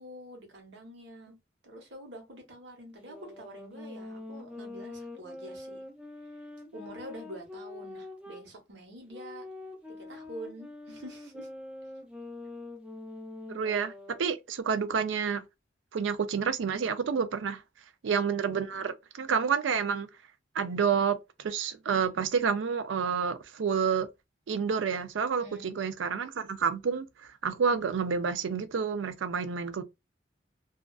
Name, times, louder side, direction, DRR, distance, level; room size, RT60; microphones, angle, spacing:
voice 1, 0.0-1.3 1.6-5.8 6.7-9.4 9.9-11.5 25.4-25.7, right 1 dB, 65° right, 1.0 m, -46 dB
sound 1, 3.0-8.5 9.1-14.3, left 2 dB, 5° right, 0.4 m, -44 dB
voice 2, 13.5-13.9 14.2-15.4 15.9-17.6 18.0-20.1 20.5-24.1 24.5-27.1 27.4-29.8, right 6 dB, 85° right, 0.4 m, -29 dB
2.3 x 2.3 x 2.3 m
head